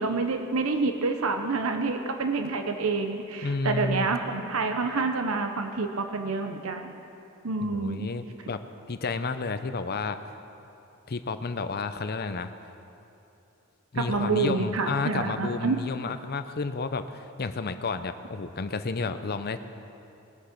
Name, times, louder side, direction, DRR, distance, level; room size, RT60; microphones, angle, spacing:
voice 1, 0.0-7.0 7.4-8.1 13.9-15.8, right 3 dB, 85° right, 5 dB, 0.8 m, -28 dB
voice 2, 3.4-4.1 7.7-8.6 8.9-10.2 11.1-12.5 13.9-19.6, left 4 dB, 50° left, 10 dB, 0.6 m, -31 dB
20.5 x 8.3 x 6.0 m, 2.9 s
head